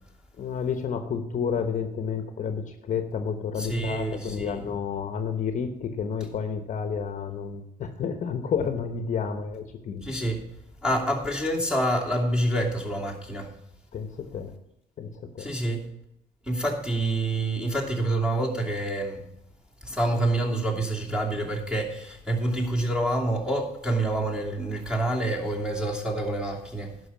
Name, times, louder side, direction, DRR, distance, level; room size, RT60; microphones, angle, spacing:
voice 1, 0.4-10.0 10.3-10.4 13.9-14.5 15.0-15.5, left 6 dB, 45° left, 1.1 m, -30 dB
voice 2, 3.6-4.6 10.0-10.4 10.8-13.5 15.4-15.9 16.4-19.2 19.8-26.9, right 1 dB, 5° right, 2.8 m, -27 dB
11.0 x 5.7 x 7.2 m
cardioid pair, 110°, 17 cm